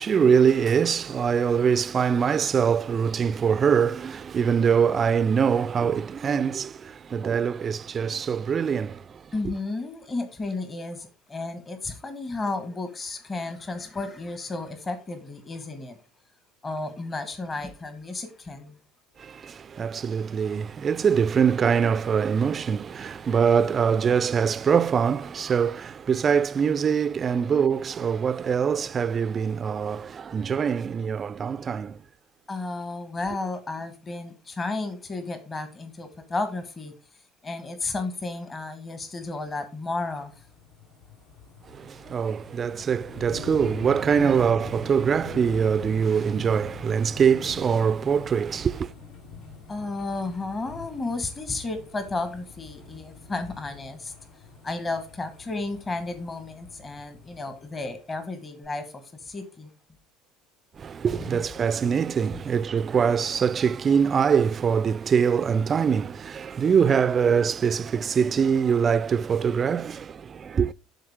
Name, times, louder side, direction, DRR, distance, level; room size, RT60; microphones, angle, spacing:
voice 1, 0.0-9.5 19.2-32.0 41.7-48.9 60.8-70.7, right 7 dB, 35° right, 0.4 m, -23 dB
voice 2, 9.3-16.0 16.6-18.8 32.5-36.9 37.4-40.4 44.2-44.4 49.7-54.1 54.6-59.7 61.2-61.4 62.3-62.4, left 3 dB, 25° left, 1.4 m, -33 dB
sound 1, 40.2-58.2 58.6-58.7, left 4 dB, 70° left, 4.8 m, -45 dB
12.0 x 4.0 x 3.5 m
hypercardioid pair, 65°, 0 cm